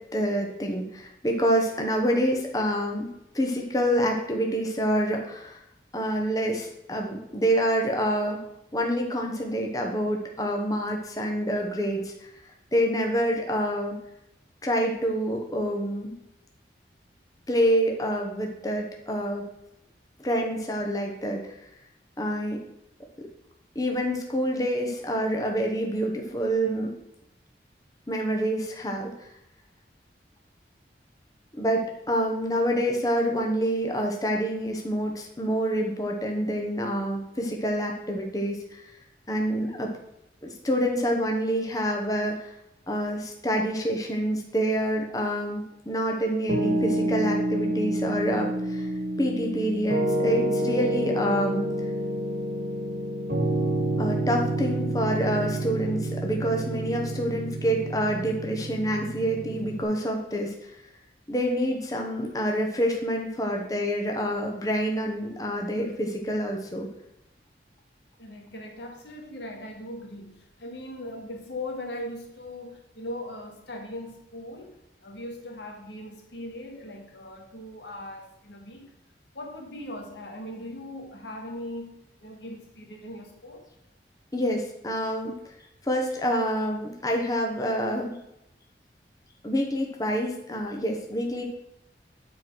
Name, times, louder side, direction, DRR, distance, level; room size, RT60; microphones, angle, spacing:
voice 1, 0.0-3.1 3.3-5.6 5.9-8.4 8.7-12.3 12.7-14.0 14.6-16.1 17.5-19.5 20.2-21.5 22.2-22.6 23.2-23.3 23.7-26.9 28.1-29.3 31.6-38.8 39.3-39.9 40.4-42.5 42.9-48.9 49.2-51.7 54.0-60.8 61.3-66.9 84.3-85.3 85.8-88.1 89.4-91.4, equal, 20° left, 1 dB, 1.1 m, -27 dB
Piano, 46.5-59.8, right 1 dB, 65° right, 1.6 m, -28 dB
voice 2, 68.2-78.9 79.3-82.0 82.2-83.7, left 1 dB, 80° left, 2 dB, 1.9 m, -39 dB
9.4 x 4.8 x 6.2 m, 0.83 s
head